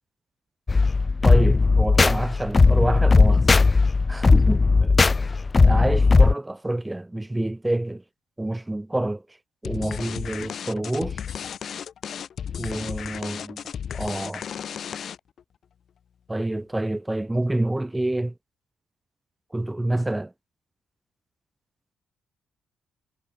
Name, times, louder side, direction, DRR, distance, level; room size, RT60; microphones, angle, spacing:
sound 1, 0.7-6.3, left 4 dB, 25° left, 0.5 m, -17 dB
voice 1, 1.2-3.4 4.1-5.0 5.6-8.0 8.4-9.2 9.6-11.2 12.6-13.6 13.9-14.4 16.3-18.3 19.5-20.3, right 1 dB, 10° right, 1.1 m, -27 dB
sound 2, 9.6-15.4, left 8 dB, 55° left, 1.5 m, -34 dB
cardioid pair, 90°, 0 cm